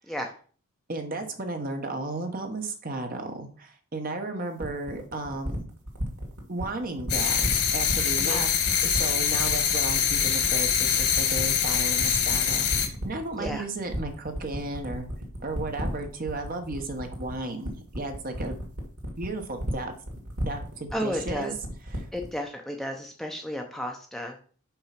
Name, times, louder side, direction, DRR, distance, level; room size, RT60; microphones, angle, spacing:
voice 1, 0.9-5.7 6.5-7.4 7.7-8.5 8.8-15.1 15.4-18.6 19.2-19.9 20.5-21.5 21.9-22.1, right 2 dB, 40° right, 5 dB, 1.1 m, -34 dB
sound 1, 4.6-22.4, equal, 85° right, 2.1 m, -34 dB
sound 2, 7.1-12.9, left 8 dB, 90° left, 1.5 m, -24 dB
voice 2, 20.9-21.5 22.1-24.3, equal, ahead, 2 dB, 0.7 m, -33 dB
5.8 x 4.7 x 5.9 m, 0.42 s
head